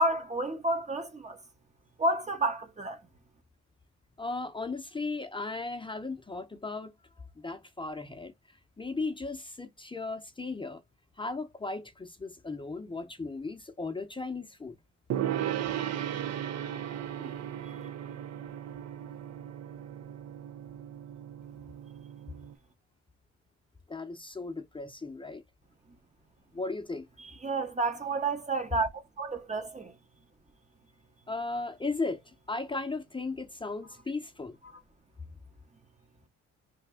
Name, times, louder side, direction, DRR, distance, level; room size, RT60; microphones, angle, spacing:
voice 1, 0.0-1.4 2.0-3.0 17.2-17.3 27.4-29.9, right 2 dB, 25° right, 0.8 m, -30 dB
voice 2, 4.2-6.9 7.4-8.3 8.8-10.8 11.2-14.8 23.9-25.4 26.5-27.1 31.3-34.6, left 3 dB, 15° left, 0.7 m, -36 dB
Gong, 15.1-22.5, right 10 dB, 60° right, 0.6 m, -36 dB
3.4 x 2.6 x 3.6 m
cardioid pair, 90°, 30 cm